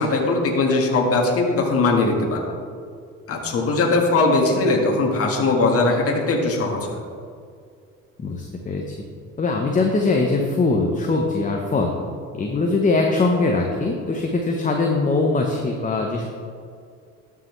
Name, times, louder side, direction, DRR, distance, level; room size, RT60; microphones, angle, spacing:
voice 1, 0.0-2.5 3.3-7.0, left 3 dB, 40° left, 0 dB, 1.6 m, -20 dB
voice 2, 8.2-8.8 9.4-11.9 12.3-16.3, left 3 dB, 25° left, 1 dB, 0.9 m, -21 dB
13.0 x 5.7 x 3.2 m, 2.2 s
supercardioid pair, 75°, 34 cm